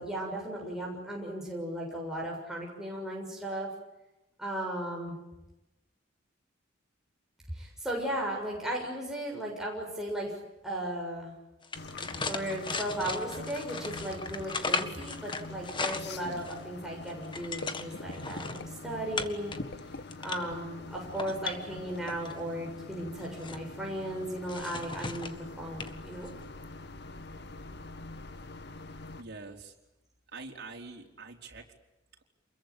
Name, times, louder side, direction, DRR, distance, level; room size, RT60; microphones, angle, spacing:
voice 1, 0.0-3.7 4.4-5.2 7.5-10.3 10.6-11.3 12.3-19.9 20.2-26.3, right 1 dB, 5° right, -2 dB, 7.2 m, -36 dB
sound 1, 11.6-16.6 17.0-18.6 19.2-19.6 20.0-20.6 21.1-22.3 23.0-23.6 24.5-25.4 25.8-25.9 26.3-26.4, left 4 dB, 25° left, 1.8 m, -37 dB
sound 2, 11.7-29.2, left 2 dB, 60° left, 1.8 m, -44 dB
voice 2, 29.2-29.7 30.3-31.7, right 3 dB, 60° right, 1 dB, 4.6 m, -44 dB
28.5 x 22.5 x 8.8 m, 0.95 s
head